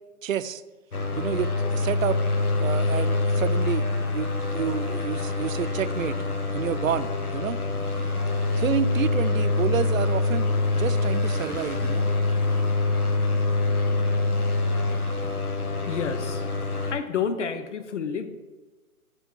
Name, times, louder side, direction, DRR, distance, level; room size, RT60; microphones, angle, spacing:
voice 1, 0.2-0.6 1.2-2.2 2.6-3.8 4.1-6.2 6.5-7.6 8.6-10.5 10.7-12.1, right 9 dB, 65° right, 14 dB, 0.5 m, -29 dB
sound 1, 0.9-16.9, left 2 dB, 85° left, 1.2 m, -25 dB
voice 2, 15.8-16.4 16.9-18.3, left 6 dB, 55° left, 10 dB, 0.7 m, -29 dB
8.1 x 3.2 x 6.0 m, 1.2 s
figure-of-eight pair, 135°, 44 cm